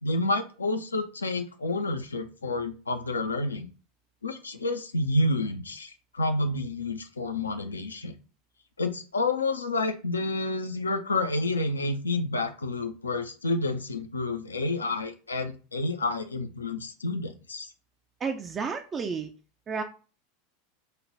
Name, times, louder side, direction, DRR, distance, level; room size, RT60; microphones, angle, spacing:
voice 1, 0.0-3.7 4.2-8.1 8.8-17.7, left 2 dB, 80° left, 8 dB, 0.4 m, -29 dB
voice 2, 18.2-19.3 19.7-19.8, right 5 dB, 25° right, 5 dB, 0.4 m, -31 dB
3.2 x 2.2 x 3.8 m, 0.35 s
figure-of-eight pair, 80°, 0 cm